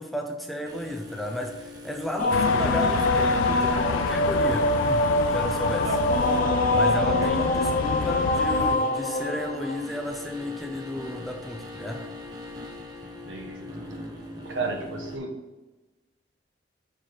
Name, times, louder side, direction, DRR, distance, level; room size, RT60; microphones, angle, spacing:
voice 1, 0.0-5.0 5.3-6.0 6.7-12.0, left 1 dB, ahead, 2 dB, 0.6 m, -33 dB
sound 1, 0.6-15.2, left 2 dB, 20° right, 1.0 m, -41 dB
sound 2, 2.2-9.8, left 1 dB, 45° left, 0.6 m, -24 dB
sound 3, 2.3-8.8, left 7 dB, 90° left, 0.3 m, -30 dB
voice 2, 13.3-13.6 14.4-15.3, right 3 dB, 85° right, 2 dB, 1.3 m, -32 dB
5.9 x 4.6 x 5.0 m, 1.2 s
head